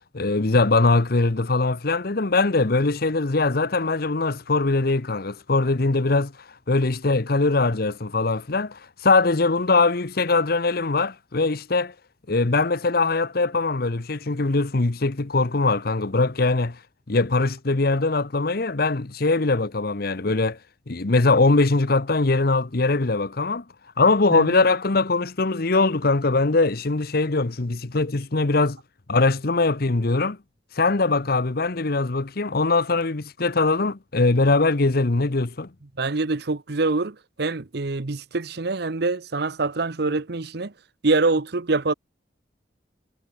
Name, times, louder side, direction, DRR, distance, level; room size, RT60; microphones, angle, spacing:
voice 1, 0.1-6.3 6.7-11.9 12.3-16.8 17.1-20.6 20.9-23.6 24.0-28.8 29.1-30.4 30.8-35.7, left 3 dB, 55° left, 1.0 m, -21 dB
voice 2, 36.0-40.7 41.0-41.9, right 3 dB, 60° right, 0.9 m, -25 dB
head